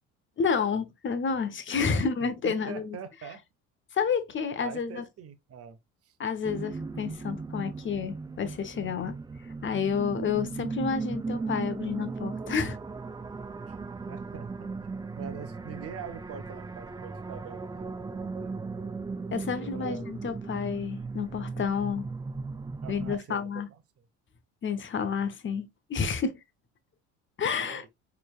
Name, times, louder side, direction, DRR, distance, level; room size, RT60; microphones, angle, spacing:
voice 1, 0.4-3.0 3.9-5.0 6.2-9.2 9.6-12.8 19.3-22.1 22.9-23.7 24.6-26.4 27.4-27.8, left 6 dB, 35° left, 0.9 m, -30 dB
voice 2, 1.9-3.4 4.6-5.8 6.0-6.2 13.7-13.8 14.1-14.7 15.2-17.9 18.4-18.6 19.4-20.1 22.8-23.6 27.6-27.9, right 7 dB, 40° right, 0.9 m, -43 dB
sound 1, 6.4-23.2, right 4 dB, 10° right, 0.4 m, -37 dB
4.3 x 3.3 x 2.4 m
supercardioid pair, 75°, 36 cm